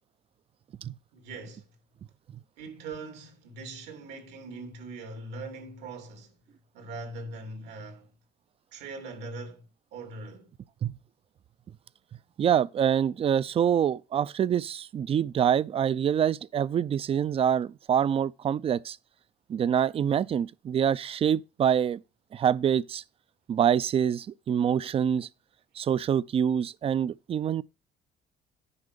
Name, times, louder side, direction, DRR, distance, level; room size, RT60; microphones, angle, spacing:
voice 1, 1.1-1.7 2.6-6.3 6.7-8.1 8.7-9.6 9.9-10.5, right 3 dB, 85° right, 2.9 m, -41 dB
voice 2, 12.4-19.0 19.5-22.0 22.3-23.0 23.5-25.3 25.8-27.6, right 9 dB, 35° right, 0.4 m, -25 dB
9.8 x 5.0 x 6.7 m
cardioid pair, 110°, 17 cm